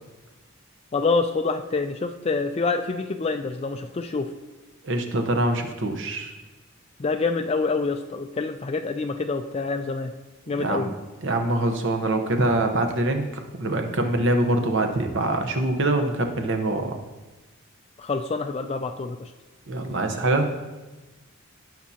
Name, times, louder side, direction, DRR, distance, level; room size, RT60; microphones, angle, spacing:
voice 1, 0.9-4.3 7.0-10.1 10.5-10.9 18.0-19.3, left 4 dB, 30° left, 6 dB, 0.3 m, -26 dB
voice 2, 4.8-6.3 10.6-10.9 11.2-16.9 19.7-20.5, right 2 dB, 60° right, 5 dB, 0.9 m, -24 dB
17.5 x 6.0 x 2.8 m, 1.2 s
head